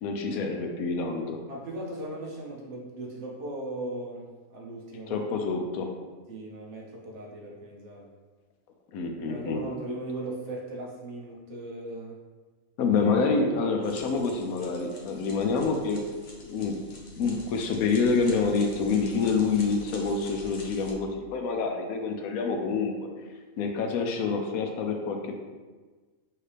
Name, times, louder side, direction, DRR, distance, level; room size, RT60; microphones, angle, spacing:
voice 1, 0.0-1.4 5.1-5.9 8.9-9.6 12.8-16.0 16.4-16.8 17.2-22.9 23.6-25.4, left 4 dB, 80° left, 3 dB, 1.1 m, -27 dB
voice 2, 1.5-5.3 6.3-8.1 9.3-12.2 12.9-13.0, right 1 dB, 60° right, -2 dB, 1.0 m, -38 dB
sound 1, 13.8-20.9, left 2 dB, 50° left, 1.0 m, -46 dB
5.8 x 2.8 x 3.3 m, 1.4 s
omnidirectional pair, 1.5 m